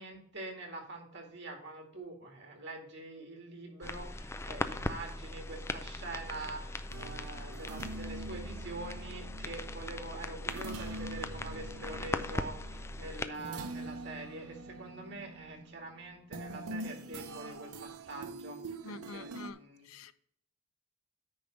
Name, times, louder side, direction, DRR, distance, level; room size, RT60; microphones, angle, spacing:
voice 1, 0.0-19.9, right 2 dB, 50° right, 2.1 m, -45 dB
sound 1, 3.8-13.3, left 2 dB, 10° left, 0.3 m, -40 dB
sound 2, 6.9-19.5, right 2 dB, 90° right, 0.7 m, -45 dB
voice 2, 18.8-19.6 19.9-20.1, left 4 dB, 80° left, 0.6 m, -46 dB
9.6 x 3.4 x 6.4 m
head